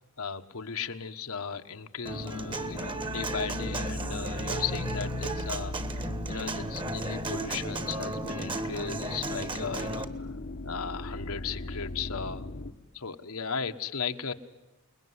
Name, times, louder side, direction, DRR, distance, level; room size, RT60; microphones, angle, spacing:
voice 1, 0.0-5.7 6.3-10.1 10.6-12.5 12.9-14.3, left 6 dB, 75° left, 7 dB, 1.4 m, -36 dB
sound 1, 2.1-12.7, left 2 dB, 55° left, 1.1 m, -38 dB
Human voice / Acoustic guitar, 2.1-10.0, right 2 dB, 20° right, 1.5 m, -35 dB
29.0 x 21.0 x 9.7 m, 1.1 s
head